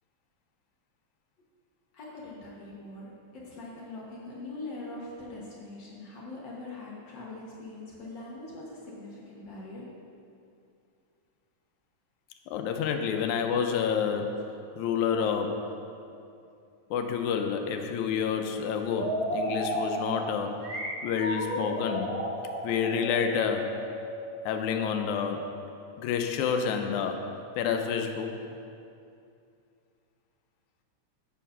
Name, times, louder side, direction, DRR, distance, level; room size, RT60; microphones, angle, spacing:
voice 1, 1.9-3.1 3.3-9.9, left 2 dB, 60° left, -5 dB, 1.2 m, -42 dB
voice 2, 12.5-14.5 14.8-15.7 16.9-20.7 21.0-22.2 22.6-23.7 24.5-25.5 26.0-27.2 27.6-28.4, left 7 dB, 90° left, 5 dB, 2.0 m, -29 dB
sound 1, 18.9-25.6, equal, 45° right, 1.0 m, -34 dB
8.1 x 4.5 x 5.5 m, 2.5 s
omnidirectional pair, 3.3 m